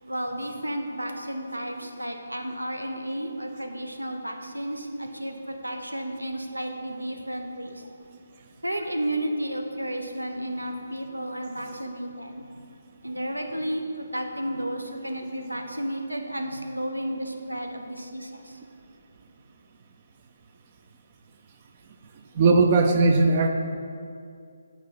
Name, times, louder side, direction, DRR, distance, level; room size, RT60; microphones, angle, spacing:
voice 1, 0.1-7.9 8.6-12.4 13.0-18.6, right 1 dB, 90° right, 4 dB, 0.7 m, -32 dB
voice 2, 22.3-23.5, right 3 dB, 30° right, 4 dB, 0.4 m, -18 dB
4.7 x 4.6 x 5.8 m, 2.4 s
figure-of-eight pair, 145°, 0 cm